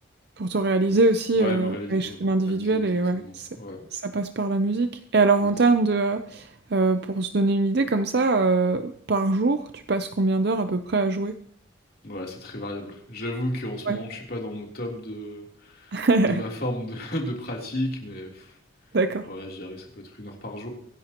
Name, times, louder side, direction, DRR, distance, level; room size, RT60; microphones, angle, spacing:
voice 1, 0.4-3.5 3.9-11.3 13.9-14.0 15.9-16.4 18.9-19.3, right 3 dB, 55° right, 9 dB, 0.6 m, -23 dB
voice 2, 1.3-3.9 5.4-5.5 12.0-18.6 19.3-20.7, left 1 dB, 50° left, -1 dB, 3.4 m, -34 dB
24.5 x 11.0 x 3.0 m, 0.64 s
head